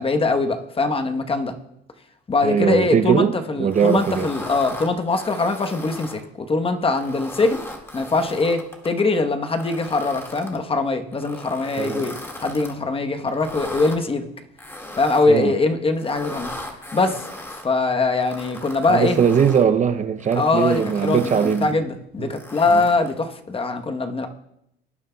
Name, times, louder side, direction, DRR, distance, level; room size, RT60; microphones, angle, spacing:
voice 1, 0.0-1.5 2.3-7.6 7.9-12.1 12.4-14.2 15.0-16.5 16.9-17.2 17.6-19.2 20.4-21.2 21.6-24.3, left 3 dB, 25° left, 1.1 m, -22 dB
voice 2, 2.4-4.3 11.8-12.1 15.3-15.5 18.9-21.8 22.2-22.3 22.7-22.8, right 7 dB, 35° right, 0.6 m, -20 dB
sound 1, 3.7-6.2 6.8-9.0 9.5-10.6 11.1-12.7 13.3-14.0 14.6-15.4 16.0-17.7 18.2-19.7 20.2-21.7 22.3-23.2, left 1 dB, 10° left, 1.9 m, -37 dB
18.0 x 9.0 x 2.3 m
supercardioid pair, 85°, 20 cm